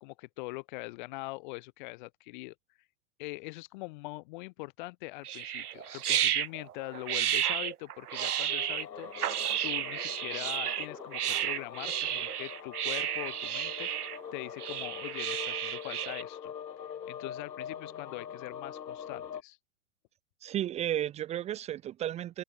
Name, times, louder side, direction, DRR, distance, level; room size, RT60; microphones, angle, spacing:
voice 1, 0.0-2.5 3.2-9.1 9.6-16.5 17.1-19.6, left 23 dB, 30° left, 2.2 m, -42 dB
sound 1, 5.2-16.2, right 10 dB, 65° right, 3.6 m, -32 dB
sound 2, 8.5-19.4, left 8 dB, 85° left, 7.2 m, -43 dB
voice 2, 20.4-22.4, right 12 dB, 15° right, 1.7 m, -33 dB
hypercardioid pair, 165°, 49 cm